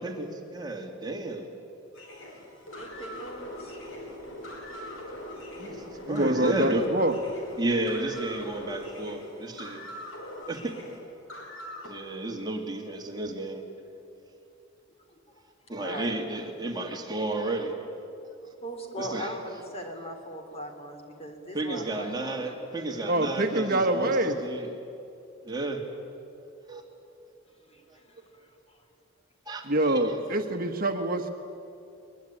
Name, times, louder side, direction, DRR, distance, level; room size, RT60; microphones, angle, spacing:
voice 1, 0.0-1.5 5.6-6.8 7.6-9.8 10.5-10.7 11.8-13.6 15.7-17.7 19.0-19.3 21.5-24.7 25.4-25.8 26.7-26.8 29.5-30.0, right 2 dB, 20° right, 2 dB, 2.5 m, -32 dB
sound 1, 1.9-11.9, left 1 dB, 85° left, 5.2 m, -41 dB
voice 2, 2.8-3.8 5.8-5.9 12.0-12.1 15.3-15.4 15.8-16.2 16.8-17.0 18.6-22.6 27.7-28.8, equal, 30° left, 4 dB, 3.5 m, -40 dB
voice 3, 6.1-7.2 23.1-24.4 29.6-31.3, right 1 dB, 45° right, 5 dB, 1.3 m, -25 dB
22.0 x 22.0 x 9.9 m, 2.7 s
head